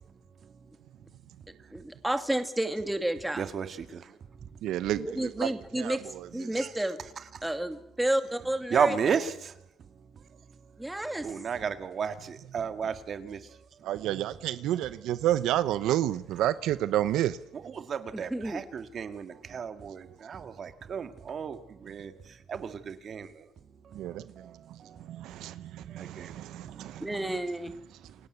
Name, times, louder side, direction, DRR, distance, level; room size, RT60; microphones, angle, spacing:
voice 1, 1.7-3.5 5.0-6.0 6.3-7.0 7.4-8.9 10.8-11.3 18.1-18.6 27.0-27.7, right 1 dB, 5° right, 2.3 m, -30 dB
voice 2, 3.4-3.8 6.5-6.7 7.2-7.3 8.7-9.3 11.2-13.4 17.5-21.6 21.8-22.1 22.5-23.3 26.0-26.3, right 7 dB, 45° right, 2.0 m, -32 dB
voice 3, 4.6-6.5 13.8-17.4 23.9-27.4 28.0-28.1, right 13 dB, 80° right, 0.8 m, -31 dB
28.5 x 17.0 x 8.1 m
cardioid pair, 120°, 0 cm